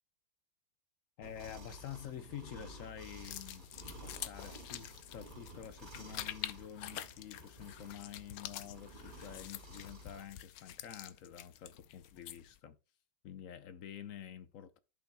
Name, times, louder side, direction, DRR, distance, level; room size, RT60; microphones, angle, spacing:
voice 1, 1.2-3.7 4.0-12.8 13.2-14.8, left 9 dB, 60° left, 0.9 m, -48 dB
sound 1, 1.2-10.2, equal, 25° right, 2.1 m, -53 dB
sound 2, 3.2-12.6, left 12 dB, 80° left, 1.3 m, -47 dB
14.5 x 5.7 x 2.2 m
omnidirectional pair, 2.0 m